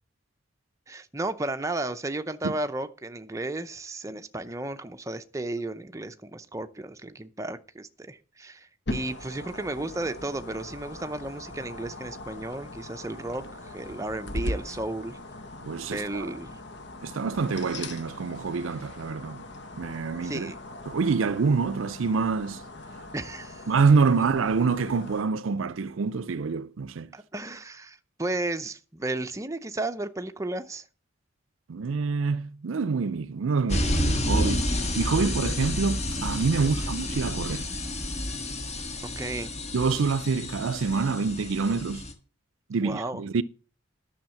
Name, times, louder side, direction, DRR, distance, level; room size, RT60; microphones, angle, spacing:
voice 1, 0.9-15.2 15.9-16.6 20.2-20.5 23.1-23.6 27.1-30.8 36.6-36.9 39.2-39.6 42.8-43.2, right 2 dB, 15° right, 0.6 m, -34 dB
sound 1, 8.9-25.2, left 1 dB, 60° left, 1.1 m, -40 dB
voice 2, 15.6-16.3 17.0-19.5 19.8-20.5 20.9-22.6 23.7-27.1 31.7-37.7 39.7-42.0 42.7-43.4, right 4 dB, 80° right, 0.5 m, -26 dB
sound 2, 33.7-42.1, left 1 dB, 35° left, 1.7 m, -30 dB
10.5 x 6.4 x 7.1 m
head